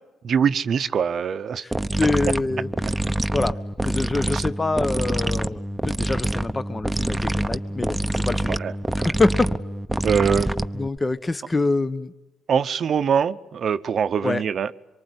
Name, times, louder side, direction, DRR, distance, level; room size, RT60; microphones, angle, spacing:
voice 1, 0.2-1.6 4.3-4.4 8.5-8.7 9.0-9.1 10.0-10.5 12.5-14.7, right 7 dB, 55° right, 12 dB, 0.8 m, -23 dB
sound 1, 1.7-11.0, right 1 dB, 10° right, 0.9 m, -26 dB
voice 2, 2.0-2.7 3.3-3.6 3.8-8.6 9.0-9.5 10.7-12.1 14.2-14.4, left 3 dB, 20° left, 14 dB, 1.0 m, -25 dB
25.0 x 23.5 x 9.6 m, 1.1 s
cardioid pair, 90°, 0 cm